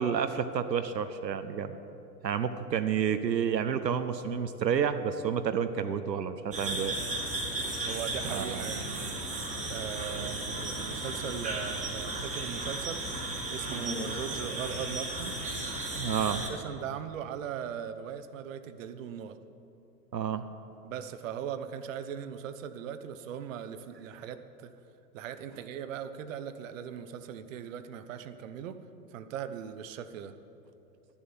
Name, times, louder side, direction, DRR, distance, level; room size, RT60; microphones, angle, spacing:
voice 1, 0.0-1.8 2.2-7.0 8.2-8.7 10.2-10.3 16.0-16.4 20.1-20.4, right 7 dB, 85° right, 10 dB, 0.6 m, -30 dB
sound 1, 6.5-16.5, right 2 dB, 15° right, 1.4 m, -35 dB
voice 2, 7.8-9.2 9.7-13.0 13.5-15.3 16.2-19.4 20.8-24.7 25.1-28.8 29.1-30.3, right 8 dB, 50° right, 11 dB, 0.8 m, -39 dB
12.0 x 7.0 x 7.2 m, 3.0 s
figure-of-eight pair, 100°, 49 cm